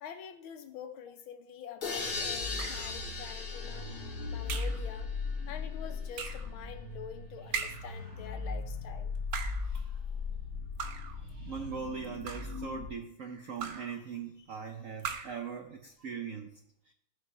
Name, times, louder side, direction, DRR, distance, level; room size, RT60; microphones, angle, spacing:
voice 1, 0.0-3.9 4.3-5.1 5.5-9.1, left 8 dB, 75° left, 7 dB, 1.6 m, -46 dB
sound 1, 1.8-5.6, left 4 dB, 40° left, 1.9 m, -39 dB
sound 2, 1.8-12.9, left 4 dB, 25° right, 3.2 m, -39 dB
sound 3, 2.6-3.0 4.5-4.9 6.1-6.5 7.5-8.0 9.2-9.7 10.8-11.2 12.0-12.6 13.6-14.0 15.0-15.5, right 6 dB, 65° right, 1.3 m, -39 dB
voice 2, 9.6-10.0 11.3-16.9, right 6 dB, 85° right, 5 dB, 0.7 m, -41 dB
14.5 x 5.3 x 4.2 m, 0.74 s
omnidirectional pair, 2.3 m